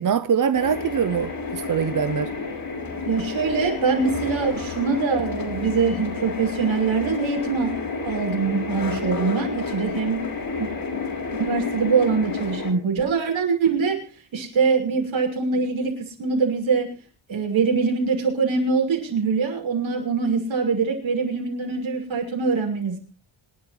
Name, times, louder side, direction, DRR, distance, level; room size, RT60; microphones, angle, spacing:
voice 1, 0.0-2.3, right 7 dB, 40° right, 0.7 m, -23 dB
sound 1, 0.5-12.7, left 4 dB, 45° left, 4.8 m, -30 dB
voice 2, 3.0-10.3 10.6-11.0 11.4-14.0 14.3-17.0 17.3-23.0, right 5 dB, 70° right, 6.2 m, -23 dB
26.5 x 11.5 x 3.2 m
wide cardioid pair, 130°, 48 cm